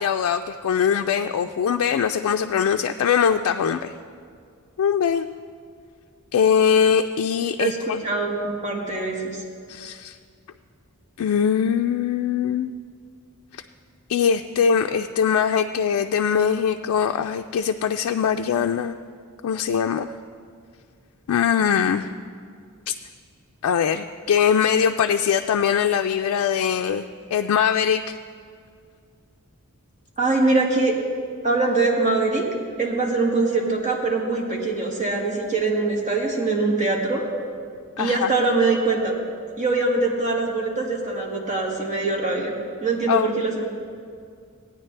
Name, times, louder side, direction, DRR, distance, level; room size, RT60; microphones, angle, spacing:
voice 1, 0.0-3.9 4.8-5.3 6.3-8.0 9.7-10.2 11.2-12.7 13.5-13.6 14.1-19.0 19.4-20.1 21.3-22.1 22.9-23.0 23.6-27.1 27.3-28.2 38.0-38.3 43.1-43.6, left 7 dB, 80° left, 5 dB, 0.3 m, -22 dB
voice 2, 8.0-9.2 30.2-30.9 31.4-32.4 32.8-37.2 38.0-39.1 39.6-42.5 42.8-43.6, right 3 dB, 35° right, -2 dB, 1.7 m, -23 dB
16.5 x 9.5 x 3.3 m, 2.2 s
head